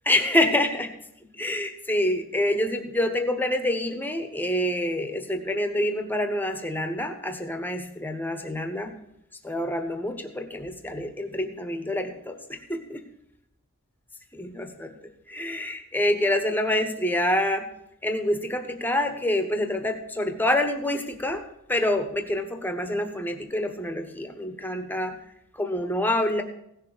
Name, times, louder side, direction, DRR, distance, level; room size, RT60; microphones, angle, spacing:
voice 1, 0.0-0.9 1.3-8.9 9.4-13.0 14.3-15.0 15.3-17.7 18.0-21.4 21.7-25.1 25.5-26.4, left 1 dB, 10° left, 7 dB, 1.2 m, -27 dB
16.5 x 6.7 x 6.7 m, 0.79 s
head